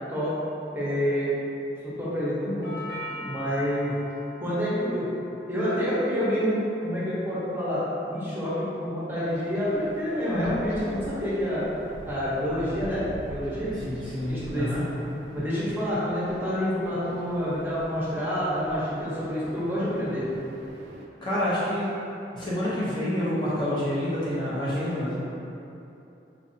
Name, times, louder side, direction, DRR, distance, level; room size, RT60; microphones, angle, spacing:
voice 1, 0.7-1.3 1.8-3.9 4.4-5.1 5.5-7.8 8.1-11.6 12.0-13.8 14.3-14.7 15.3-20.3, equal, 10° right, -10 dB, 0.8 m, -28 dB
Doorbell, 2.6-10.7, left 1 dB, 85° left, 0.7 m, -45 dB
sound 1, 9.2-21.1, right 1 dB, 70° right, 0.3 m, -45 dB
voice 2, 13.9-14.8 21.2-21.9 22.3-25.2, left 1 dB, 25° left, -10 dB, 0.6 m, -28 dB
4.2 x 2.6 x 2.6 m, 2.9 s
head